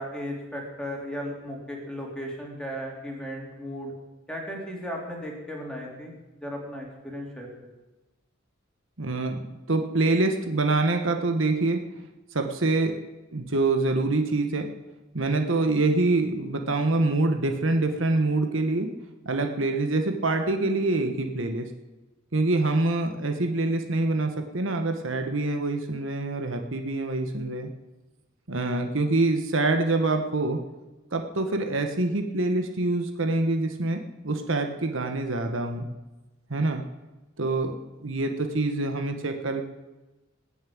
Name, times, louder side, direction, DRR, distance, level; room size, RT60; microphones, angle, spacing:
voice 1, 0.0-3.9 4.3-6.1 6.4-7.7, equal, 5° left, -2 dB, 3.6 m, -36 dB
voice 2, 9.0-11.8 12.3-13.0 13.3-14.7 15.1-18.9 19.2-21.7 22.3-27.7 28.5-30.6 31.1-35.9 36.5-36.8 37.4-37.7 38.0-39.6, right 2 dB, 70° right, 5 dB, 1.3 m, -25 dB
19.5 x 7.4 x 8.7 m, 1.1 s
head